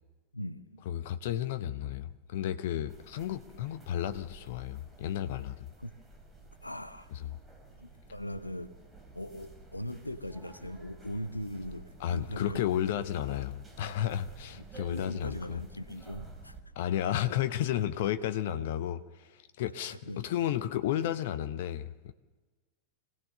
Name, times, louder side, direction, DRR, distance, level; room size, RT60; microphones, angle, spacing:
voice 1, 0.3-0.9 5.8-5.9 6.6-7.1 7.8-8.7 9.1-12.9 14.5-16.6 19.8-20.3, equal, 85° left, 0.8 m, -40 dB
voice 2, 0.9-5.7 7.2-7.3 12.0-15.6 16.7-22.1, left 11 dB, 55° left, 0.9 m, -33 dB
sound 1, 2.9-16.6, right 3 dB, 10° right, 3.9 m, -52 dB
26.0 x 17.0 x 6.6 m
figure-of-eight pair, 90°, 0 cm